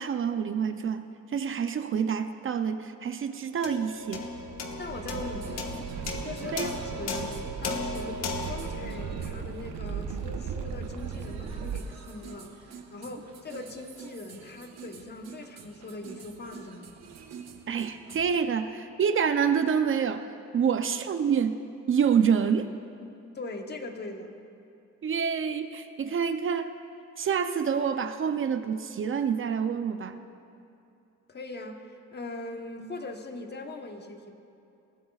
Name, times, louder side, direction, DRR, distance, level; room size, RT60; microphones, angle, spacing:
voice 1, 0.0-4.3 6.5-6.8 17.7-20.3 20.5-21.6 21.9-22.7 25.0-26.7 27.2-30.2, right 7 dB, 45° right, 9 dB, 0.6 m, -27 dB
sound 1, 3.6-10.2, left 3 dB, 55° left, 1.5 m, -37 dB
sound 2, 4.1-11.8, right 7 dB, 90° right, 0.9 m, -37 dB
voice 2, 4.8-17.0 23.3-24.4 31.3-34.4, left 2 dB, 35° left, 4 dB, 1.2 m, -41 dB
sound 3, 4.9-18.3, right 6 dB, 60° right, 1.2 m, -48 dB
20.0 x 15.5 x 2.4 m, 2.7 s
cardioid pair, 90°, 30 cm